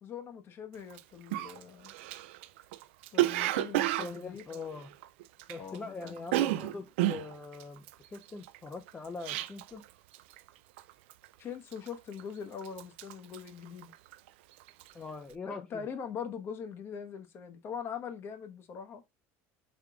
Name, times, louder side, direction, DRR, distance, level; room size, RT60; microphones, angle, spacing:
voice 1, 0.0-1.9 3.1-4.4 5.6-6.2 11.4-13.9 15.5-19.0, left 7 dB, 40° left, 0.8 m, -42 dB
Cough, 0.9-1.0 1.3-5.8 6.0-9.8 10.1-10.5 10.8-11.2 11.7-12.3 12.6-14.3 14.6-14.9, right 15 dB, 90° right, 0.3 m, -32 dB
voice 2, 4.0-4.9 5.5-9.8 14.9-15.9, left 4 dB, 20° left, 0.4 m, -42 dB
3.6 x 3.5 x 3.4 m
supercardioid pair, 125°, 6 cm